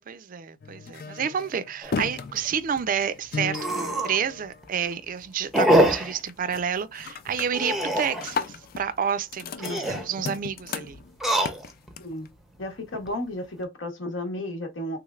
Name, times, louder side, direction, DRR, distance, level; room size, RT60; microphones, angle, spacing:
voice 1, 0.0-11.0, right 7 dB, 45° right, 0.4 m, -30 dB
sound 1, 0.6-5.1 5.5-5.9 6.2-6.6 6.9-12.3, left 5 dB, 50° left, 0.4 m, -36 dB
sound 2, 1.8-2.0 2.4-2.5 2.8-2.9 3.5-4.2 4.6-4.9 5.5-6.2 7.5-8.3 9.5-10.1 11.1-11.9 12.5-13.1, right 1 dB, ahead, 0.6 m, -24 dB
voice 2, 12.0-12.3 12.6-15.0, left 1 dB, 80° left, 1.0 m, -33 dB
3.4 x 3.1 x 2.3 m
head